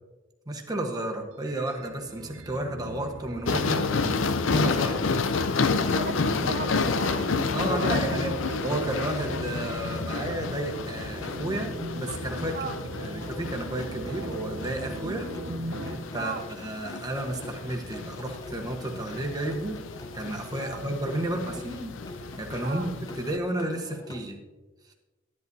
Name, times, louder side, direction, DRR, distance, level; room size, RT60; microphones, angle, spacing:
voice 1, 0.5-3.9 4.5-5.0 7.5-8.3 8.6-12.6 13.0-15.3 15.8-19.8 20.1-21.9 22.4-24.4, right 1 dB, 20° right, 2 dB, 1.1 m, -32 dB
sound 1, 1.3-16.0, right 1 dB, 80° right, 0.7 m, -39 dB
sound 2, 3.5-23.4, left 4 dB, 65° left, 0.5 m, -30 dB
sound 3, 4.8-24.3, equal, 20° left, 0.6 m, -46 dB
voice 2, 5.9-7.4 7.7-8.0 12.5-12.7 16.1-16.4 20.6-20.8 22.6-22.9, right 4 dB, 45° right, 5 dB, 0.4 m, -36 dB
12.0 x 11.0 x 2.7 m, 1.2 s
head